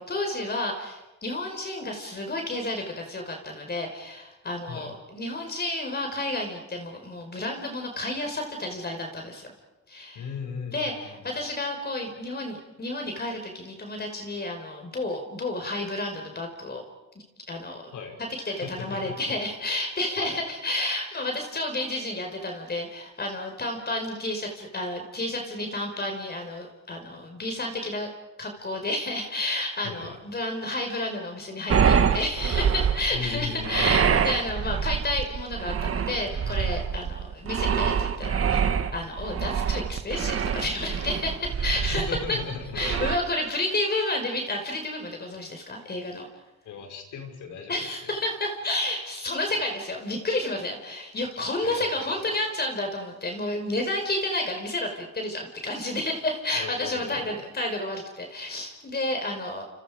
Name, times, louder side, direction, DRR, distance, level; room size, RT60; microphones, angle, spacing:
voice 1, 0.0-9.5 9.9-10.2 10.7-16.8 17.5-28.1 28.4-42.4 42.7-46.3 47.7-59.6, left 2 dB, 35° left, 3 dB, 5.2 m, -31 dB
voice 2, 10.1-11.4 17.9-18.2 18.4-19.1 20.2-20.4 29.8-30.2 33.1-34.4 41.7-42.8 46.6-48.1 51.6-52.2 56.5-57.4, left 6 dB, 80° left, 3 dB, 6.1 m, -37 dB
sound 1, 31.7-43.2, right 7 dB, 50° right, 1.7 m, -25 dB
29.5 x 29.0 x 5.1 m, 1.0 s
cardioid pair, 90°, 30 cm